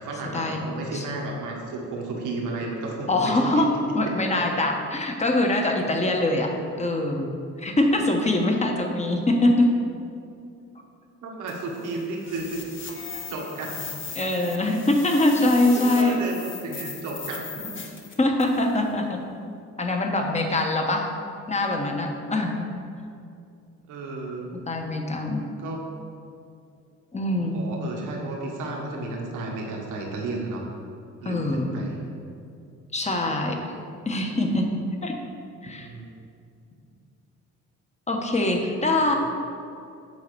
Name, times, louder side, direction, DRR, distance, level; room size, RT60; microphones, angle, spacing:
voice 1, 0.0-3.7 4.0-4.5 8.9-9.1 11.2-12.6 13.1-13.9 15.7-17.8 23.9-24.5 25.6-25.8 27.5-30.6 31.2-32.0 35.7-36.1 39.0-39.2, right 2 dB, 85° right, -1 dB, 1.5 m, -33 dB
voice 2, 3.1-6.5 6.8-7.3 7.6-9.7 14.1-16.2 18.2-19.2 19.8-21.1 21.5-22.7 24.7-25.4 27.1-27.6 31.2-31.7 32.9-33.6 34.1-34.7 35.0-35.1 35.6-35.9 38.1-39.1, left 1 dB, 20° left, 2 dB, 1.2 m, -23 dB
sound 1, 11.5-18.7, left 5 dB, 40° left, 1.1 m, -38 dB
8.4 x 3.9 x 6.9 m, 2.5 s
cardioid pair, 90°, 30 cm